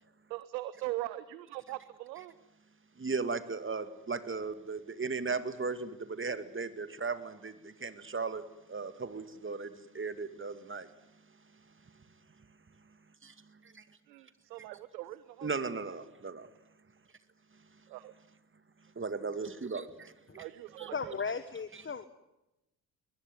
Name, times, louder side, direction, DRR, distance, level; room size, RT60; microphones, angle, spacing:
voice 1, 0.3-2.3 14.1-15.5 17.9-18.1 20.4-21.2, right 16 dB, 85° right, 15 dB, 1.0 m, -41 dB
voice 2, 3.0-8.4 8.7-10.9 13.2-13.3 13.7-13.8 15.4-16.5 19.0-20.1 20.8-20.9, right 4 dB, 25° right, 12 dB, 2.3 m, -36 dB
voice 3, 20.9-22.1, left 5 dB, 25° left, 13 dB, 1.5 m, -36 dB
22.0 x 20.5 x 9.5 m, 0.95 s
hypercardioid pair, 55°, 50 cm